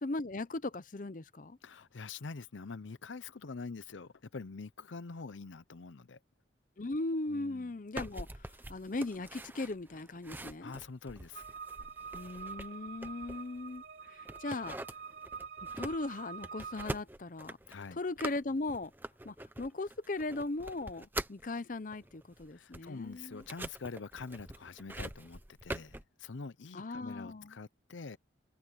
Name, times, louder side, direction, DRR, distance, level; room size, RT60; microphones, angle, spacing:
voice 1, 0.0-1.6 6.8-10.7 12.1-14.8 15.8-17.6 17.9-18.9 19.2-23.4 26.7-27.5, left 2 dB, 45° left, 0.7 m, -38 dB
voice 2, 1.6-6.2 7.3-7.7 10.6-11.5 17.7-18.0 22.5-28.2, left 4 dB, 85° left, 0.7 m, -45 dB
sound 1, 8.0-13.8 14.3-21.5 21.9-26.0, right 1 dB, 10° right, 0.9 m, -44 dB
sound 2, 11.3-16.9, right 5 dB, 55° right, 5.0 m, -46 dB
head